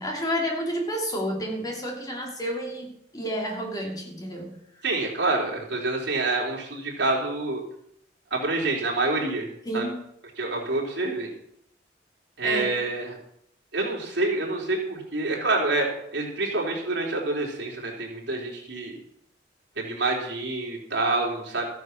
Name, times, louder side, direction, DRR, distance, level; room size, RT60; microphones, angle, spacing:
voice 1, 0.0-4.5 9.6-9.9 12.4-12.8, equal, 20° left, 0 dB, 2.9 m, -30 dB
voice 2, 4.8-7.6 8.3-9.5 9.7-9.8 10.4-11.3 12.4-13.2 13.7-15.9 16.1-18.9 19.8-21.7, right 2 dB, 65° right, -1 dB, 3.8 m, -27 dB
14.5 x 9.5 x 6.1 m, 0.70 s
head